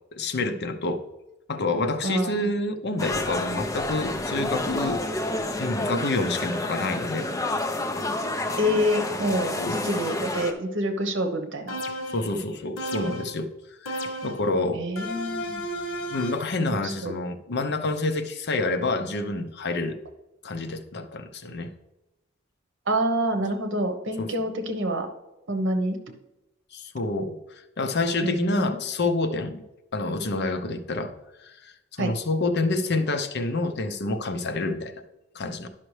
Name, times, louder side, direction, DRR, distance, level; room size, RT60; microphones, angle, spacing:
voice 1, 0.2-1.0 1.5-5.0 5.6-7.3 9.6-9.8 12.1-13.5 13.8-14.9 16.1-20.0 20.4-21.7 24.2-24.3 26.7-29.6 29.9-31.1 31.4-35.0 35.3-35.7, left 2 dB, 55° left, 7 dB, 0.7 m, -28 dB
voice 2, 2.0-2.5 8.6-11.8 14.7-15.6 16.7-17.1 22.9-25.1 25.5-26.0 28.2-28.8 32.0-32.1, equal, 65° right, 6 dB, 1.1 m, -27 dB
sound 1, 3.0-10.5, left 2 dB, 15° left, 0.7 m, -29 dB
sound 2, 11.7-12.3 12.8-13.4 13.9-14.5 15.0-16.5, equal, 90° left, 1.1 m, -33 dB
11.0 x 5.7 x 3.3 m, 0.96 s
head